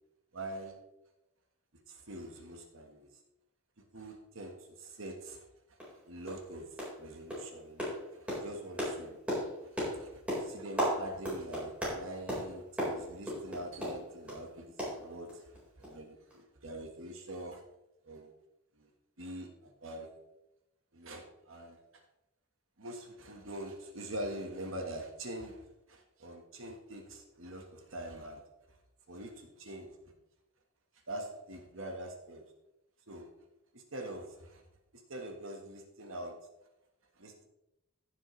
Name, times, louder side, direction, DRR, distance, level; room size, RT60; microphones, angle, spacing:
voice 1, 0.3-0.8 1.9-3.2 3.9-17.6 18.0-18.3 18.8-18.9 19.2-20.1 20.9-22.0 22.8-28.4 29.1-29.9 31.1-32.4 33.1-33.3 33.7-34.6 34.9-36.3 37.2-37.5, right 1 dB, 65° right, 3 dB, 1.4 m, -44 dB
sound 1, 5.8-6.0 6.2-6.5 6.8-7.0 7.3-14.4 14.8-15.6 15.8-15.9 16.3-16.4, equal, 5° right, 4.4 m, -36 dB
15.5 x 7.5 x 3.2 m, 0.90 s
head